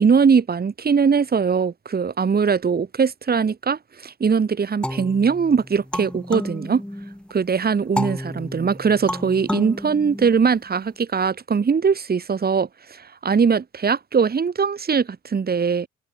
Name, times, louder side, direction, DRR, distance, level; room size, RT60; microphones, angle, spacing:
voice 1, 0.0-6.8 7.3-15.9, right 6 dB, 30° right, 1.5 m, -21 dB
sound 1, 4.8-7.3 8.0-10.8, left 1 dB, 5° left, 1.1 m, -31 dB
open air
cardioid pair, 90°, 30 cm